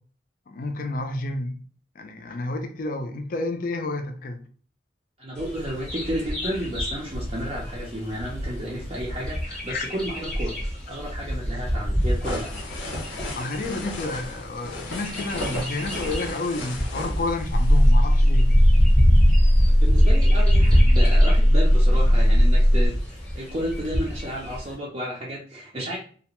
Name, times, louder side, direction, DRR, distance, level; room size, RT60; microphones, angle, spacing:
voice 1, 0.5-1.6 2.0-4.4 9.7-9.8 11.1-11.2 13.4-18.5, left 2 dB, 50° left, 0.4 m, -30 dB
voice 2, 5.2-12.6 19.6-26.0, equal, 30° right, 0.5 m, -32 dB
Bird vocalization bird call bird song, 5.3-24.7, equal, 5° left, 0.7 m, -28 dB
sound 1, 12.0-17.9, left 1 dB, 85° left, 0.6 m, -35 dB
sound 2, 17.5-22.9, equal, 75° right, 0.8 m, -17 dB
2.4 x 2.1 x 2.9 m
head